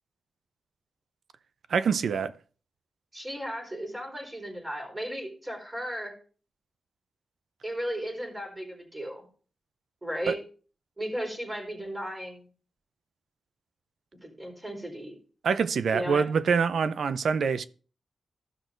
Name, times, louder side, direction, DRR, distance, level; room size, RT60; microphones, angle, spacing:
voice 1, 1.7-2.3 10.3-10.4 15.4-17.6, right 6 dB, 75° right, 0.5 m, -25 dB
voice 2, 3.1-6.1 7.6-9.3 10.0-10.4 11.0-12.5 14.1-15.1 15.9-16.3, equal, 20° right, 4.1 m, -35 dB
14.5 x 6.1 x 2.5 m
cardioid pair, 80°, 0 cm